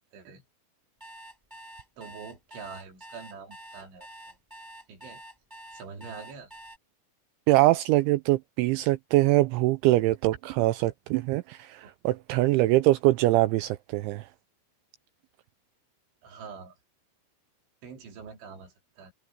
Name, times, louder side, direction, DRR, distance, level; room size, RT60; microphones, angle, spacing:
voice 1, 0.1-0.4 2.0-4.4 4.9-5.2 5.7-6.5 11.8-11.9 16.2-16.8 17.8-19.1, right 5 dB, 65° right, 5.6 m, -45 dB
sound 1, 1.0-6.8, right 1 dB, 5° right, 7.4 m, -47 dB
voice 2, 7.5-14.3, right 17 dB, 90° right, 2.7 m, -23 dB
omnidirectional pair, 6.0 m